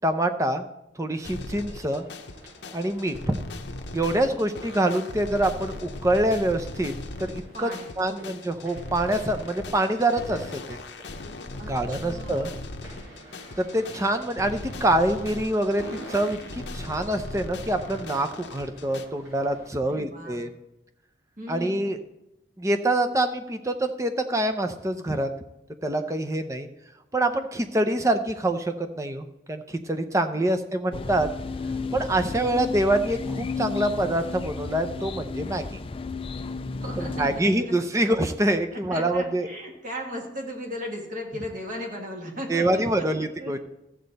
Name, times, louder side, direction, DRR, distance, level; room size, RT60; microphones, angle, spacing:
voice 1, 0.0-0.7 1.0-2.1 2.7-3.4 3.9-6.9 7.2-7.7 8.0-10.8 11.7-12.5 13.6-20.5 21.5-22.0 22.6-25.3 25.8-26.7 27.1-31.3 31.9-35.8 37.2-39.5 42.5-43.6, right 1 dB, 15° right, 7 dB, 0.6 m, -25 dB
sound 1, 1.2-19.0, left 2 dB, 60° left, 0.7 m, -39 dB
sound 2, 1.6-19.7, right 1 dB, 85° right, 4.6 m, -48 dB
voice 2, 7.5-8.3 11.6-12.6 19.8-20.4 21.4-21.9 30.3-30.6 36.8-37.7 38.7-43.6, equal, 40° right, 0 dB, 2.0 m, -37 dB
sound 3, 30.9-37.4, left 4 dB, 30° left, 0.4 m, -33 dB
13.5 x 7.7 x 4.1 m, 0.90 s
head